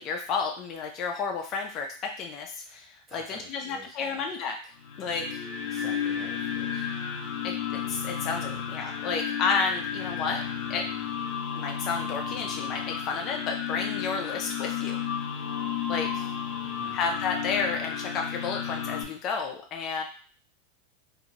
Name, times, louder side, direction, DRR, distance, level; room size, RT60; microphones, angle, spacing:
voice 1, 0.0-4.6 5.0-5.4 7.4-10.4 10.7-10.8 11.5-15.0 15.9-16.3 16.9-20.0, left 5 dB, 30° left, 3 dB, 0.3 m, -31 dB
voice 2, 3.1-4.3 5.7-6.9 16.6-17.0, equal, 10° right, -4 dB, 0.9 m, -48 dB
sound 1, 4.8-19.0, left 8 dB, 60° left, 1.0 m, -33 dB
2.9 x 2.5 x 2.7 m, 0.42 s
supercardioid pair, 160°, 0 cm